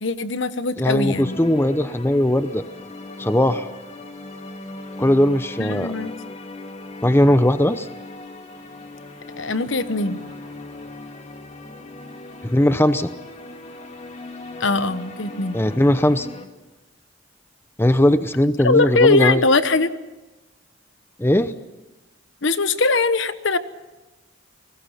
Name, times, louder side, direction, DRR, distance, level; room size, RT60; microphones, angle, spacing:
voice 1, 0.0-1.4 5.6-6.1 9.4-10.2 14.6-15.6 18.6-19.9 22.4-23.6, left 3 dB, 65° left, 12 dB, 1.2 m, -21 dB
voice 2, 0.8-2.6 3.2-3.7 5.0-5.9 7.0-7.9 12.4-13.1 15.5-16.3 17.8-19.4 21.2-21.5, left 1 dB, 10° left, 11 dB, 0.7 m, -18 dB
sound 1, 1.1-16.5, left 2 dB, 35° left, 2.1 m, -38 dB
29.5 x 20.0 x 5.8 m, 1.1 s
head